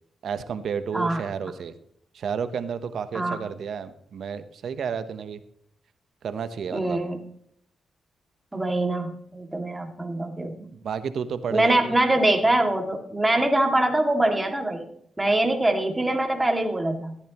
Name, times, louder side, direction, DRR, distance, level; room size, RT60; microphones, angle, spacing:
voice 1, 0.2-1.7 2.1-5.4 6.2-7.0 10.7-12.0, right 7 dB, 70° right, 12 dB, 1.0 m, -31 dB
voice 2, 6.7-7.2 8.5-10.7 11.5-14.9 15.2-17.2, right 1 dB, 15° right, 4 dB, 2.2 m, -23 dB
14.0 x 10.0 x 3.0 m, 0.70 s
cardioid pair, 70°, 0 cm